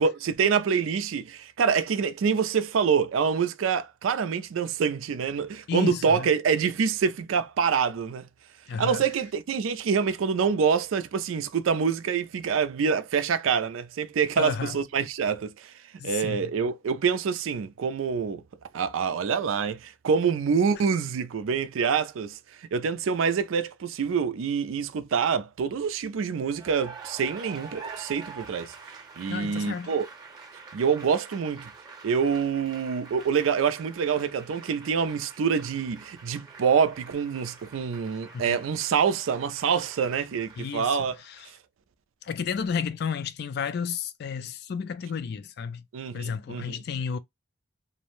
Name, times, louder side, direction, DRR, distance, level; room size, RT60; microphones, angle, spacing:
voice 1, 0.0-8.3 8.8-15.7 16.0-18.4 18.7-22.4 22.7-28.7 29.2-30.1 30.7-31.7 32.0-41.2 45.9-46.8, right 6 dB, 85° right, 0.4 m, -26 dB
voice 2, 5.7-6.3 8.7-9.0 14.4-14.8 16.0-16.5 29.3-29.9 38.3-38.6 40.6-41.5 42.2-45.9 46.1-47.2, left 6 dB, 55° left, 0.3 m, -32 dB
Cheering / Applause, 26.4-41.4, right 4 dB, 20° right, 0.8 m, -46 dB
2.6 x 2.0 x 3.0 m
head